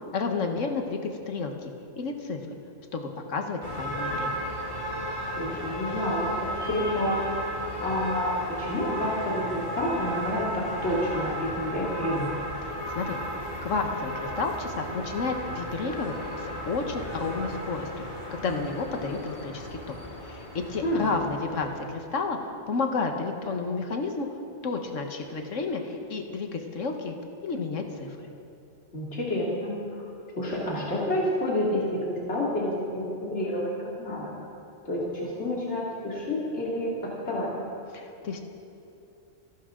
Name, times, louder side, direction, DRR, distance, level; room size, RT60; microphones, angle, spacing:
voice 1, 0.1-1.0 1.3-1.7 2.0-2.4 2.9-4.4 12.6-13.2 13.6-18.0 18.3-20.0 20.3-22.4 22.7-24.3 24.6-27.2 27.4-28.3 37.9-38.4, left 4 dB, 90° left, 4 dB, 1.6 m, -31 dB
sound 1, 3.6-21.8, equal, 50° left, 2.3 m, -34 dB
voice 2, 5.4-7.2 7.8-8.3 8.6-12.3 20.8-21.1 28.9-29.7 30.4-33.7 34.0-34.3 34.8-36.9 37.2-37.5, left 1 dB, 65° left, -6 dB, 2.9 m, -29 dB
27.5 x 12.0 x 3.8 m, 2.8 s
omnidirectional pair, 1.3 m